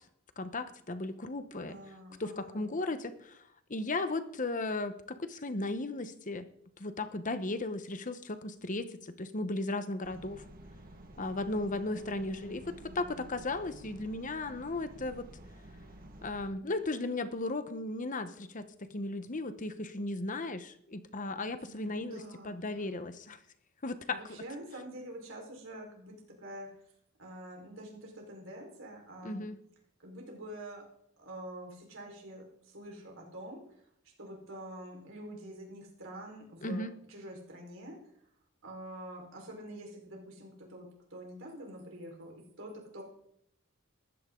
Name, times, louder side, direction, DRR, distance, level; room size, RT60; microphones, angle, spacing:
voice 1, 0.4-1.8 2.2-3.4 3.7-6.5 6.8-10.4 11.2-15.3 16.2-23.4 23.8-24.2 29.2-29.6 36.6-36.9, left 2 dB, 35° left, 10 dB, 1.0 m, -36 dB
voice 2, 1.7-2.7 12.0-13.2 21.6-23.1 24.1-26.8 27.2-29.5 30.0-30.8 31.2-38.0 38.6-43.0, right 1 dB, 60° right, 0 dB, 4.6 m, -47 dB
sound 1, 10.0-16.5, right 1 dB, 40° right, 1.7 m, -51 dB
19.5 x 15.0 x 3.8 m, 0.73 s
head